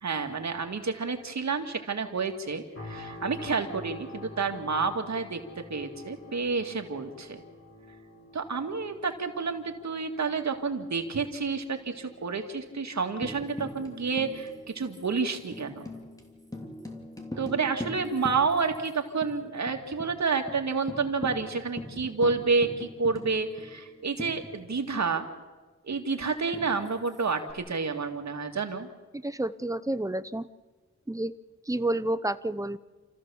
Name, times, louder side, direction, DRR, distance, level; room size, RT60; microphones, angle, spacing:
voice 1, 0.0-5.4 5.7-7.4 8.3-15.9 17.4-25.3 25.8-28.9, right 4 dB, 65° right, 4 dB, 2.1 m, -29 dB
sound 1, 2.7-17.8 18.2-18.4, left 2 dB, 45° left, 7.2 m, -49 dB
Tambourine, 13.2-18.9 19.2-19.3 19.7-20.1 20.5-20.6 20.9-25.0 26.5-27.5, left 1 dB, 10° left, 3.0 m, -41 dB
voice 2, 29.1-30.5 31.1-31.3 31.7-32.8, right 1 dB, 10° right, 13 dB, 0.7 m, -30 dB
28.5 x 14.5 x 7.0 m, 1.3 s
wide cardioid pair, 90°, 30 cm